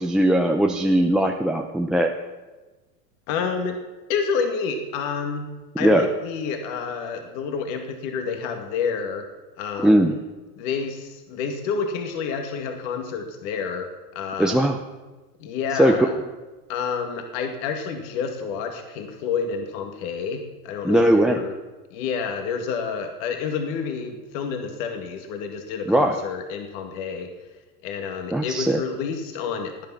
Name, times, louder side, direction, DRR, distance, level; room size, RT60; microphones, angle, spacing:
voice 1, 0.0-2.1 5.8-6.1 9.8-10.1 14.4-14.8 15.7-16.1 20.8-21.4 25.9-26.2 28.3-28.8, right 1 dB, ahead, 5 dB, 0.5 m, -19 dB
voice 2, 3.3-3.8 4.1-5.5 5.8-9.2 9.6-10.1 10.6-14.6 15.4-16.1 16.7-21.5 21.9-27.3 27.8-29.9, left 6 dB, 55° left, 5 dB, 2.2 m, -29 dB
17.5 x 10.5 x 5.9 m, 1.2 s
supercardioid pair, 125°, 46 cm